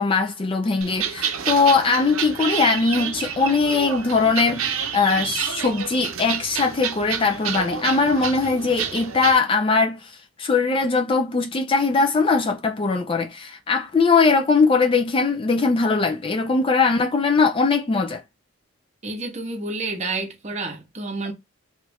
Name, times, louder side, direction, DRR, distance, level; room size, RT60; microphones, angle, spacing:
voice 1, 0.0-18.2, left 4 dB, 25° left, 0.3 m, -20 dB
sound 1, 0.8-9.4, right 7 dB, 80° right, 0.6 m, -29 dB
voice 2, 19.0-21.3, right 3 dB, 35° right, 0.7 m, -29 dB
3.0 x 2.4 x 3.3 m
head